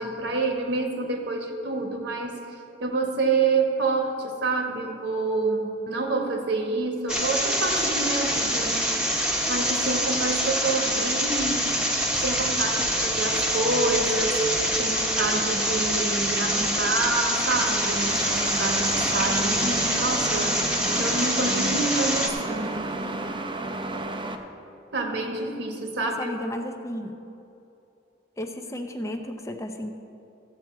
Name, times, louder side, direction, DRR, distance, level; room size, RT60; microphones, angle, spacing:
voice 1, 0.0-14.5 14.8-23.0 24.9-26.4, right 3 dB, 65° right, 3 dB, 1.3 m, -28 dB
sound 1, 7.1-22.3, equal, 5° right, 1.0 m, -25 dB
sound 2, 17.5-24.4, right 2 dB, 25° right, 0.6 m, -32 dB
voice 2, 26.1-27.2 28.4-29.9, left 1 dB, 15° left, 5 dB, 0.6 m, -33 dB
14.5 x 7.9 x 4.6 m, 2.8 s
head